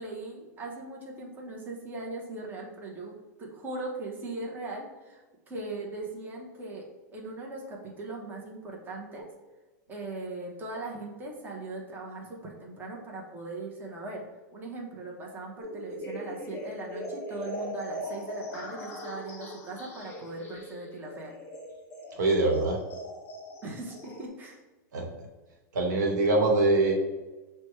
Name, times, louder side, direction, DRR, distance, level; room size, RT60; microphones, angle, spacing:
voice 1, 0.0-5.2 5.5-6.9 7.1-9.3 9.9-14.2 14.5-21.3 23.6-24.6, right 2 dB, 20° right, -1 dB, 0.8 m, -39 dB
sound 1, 15.6-24.3, equal, 25° left, 1.0 m, -40 dB
voice 2, 22.2-22.8 24.9-25.1 25.7-26.9, right 2 dB, 80° right, 1 dB, 1.1 m, -23 dB
5.9 x 2.2 x 3.0 m, 1.2 s
supercardioid pair, 130°, 9 cm